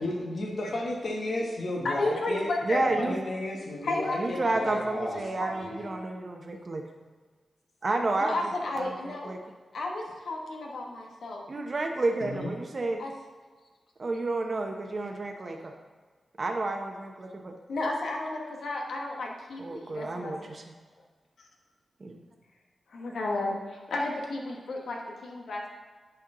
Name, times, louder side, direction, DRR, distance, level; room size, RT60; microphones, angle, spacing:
voice 1, 0.0-2.5 3.0-5.7 12.2-12.5, left 1 dB, 65° left, -1 dB, 1.2 m, -33 dB
voice 2, 1.8-2.8 3.8-4.7 5.2-6.1 8.2-9.3 9.7-11.4 13.0-13.1 17.7-20.3 21.4-21.5 22.9-25.7, left 2 dB, 85° left, 0 dB, 1.3 m, -33 dB
voice 3, 2.6-3.2 4.2-6.8 7.8-8.3 8.7-9.4 11.5-13.0 14.0-15.7 16.4-17.5 19.6-20.6 22.0-22.2, right 2 dB, 50° right, 3 dB, 0.8 m, -30 dB
10.0 x 4.5 x 3.8 m, 1.5 s
cardioid pair, 60°, 0 cm